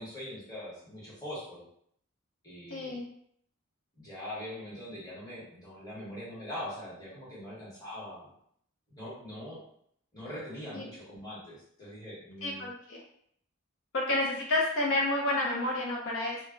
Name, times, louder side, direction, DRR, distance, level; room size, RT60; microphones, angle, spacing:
voice 1, 0.0-1.7 2.4-3.0 4.0-8.3 8.9-9.6 10.1-12.7, left 1 dB, 15° left, -8 dB, 1.0 m, -42 dB
voice 2, 2.7-3.1 10.7-10.9 12.4-13.0 13.9-16.4, left 2 dB, 60° left, -2 dB, 0.5 m, -30 dB
2.1 x 2.1 x 3.6 m, 0.67 s
head